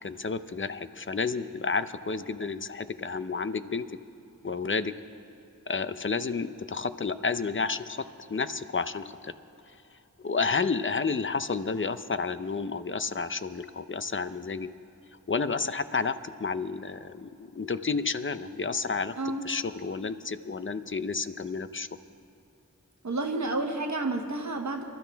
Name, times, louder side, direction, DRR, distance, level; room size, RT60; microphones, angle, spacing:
voice 1, 0.0-3.9 4.4-4.9 5.7-9.3 10.2-14.7 15.3-19.1 19.4-21.9, left 4 dB, 40° left, 12 dB, 0.6 m, -31 dB
voice 2, 23.0-24.8, right 2 dB, 60° right, 3 dB, 1.0 m, -30 dB
26.5 x 12.5 x 3.4 m, 2.9 s
wide cardioid pair, 55°, 33 cm